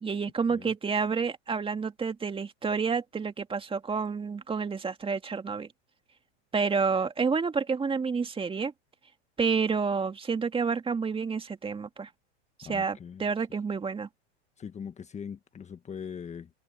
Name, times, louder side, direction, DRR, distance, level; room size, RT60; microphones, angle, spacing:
voice 1, 0.0-5.7 6.5-8.7 9.4-12.1 12.6-14.1, right 5 dB, 15° right, 2.2 m, -29 dB
voice 2, 12.6-13.2 14.6-16.5, left 7 dB, 20° left, 1.6 m, -41 dB
hypercardioid pair, 120°, 35 cm